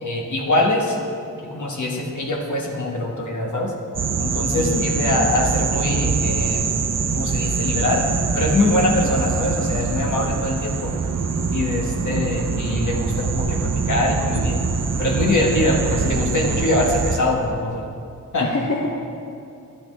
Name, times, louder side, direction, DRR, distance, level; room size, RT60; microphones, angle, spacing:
voice 1, 0.0-1.0 1.4-3.7 4.2-6.7 7.1-8.1 8.3-10.9 11.5-14.6 15.0-17.8 18.3-18.5, left 2 dB, 65° left, 0 dB, 1.4 m, -23 dB
sound 1, 3.9-17.2, right 5 dB, 50° right, 0.6 m, -24 dB
voice 2, 4.6-5.1 18.4-18.9, left 2 dB, 45° left, -1 dB, 0.9 m, -26 dB
11.5 x 8.6 x 3.4 m, 2.6 s
wide cardioid pair, 80°, 33 cm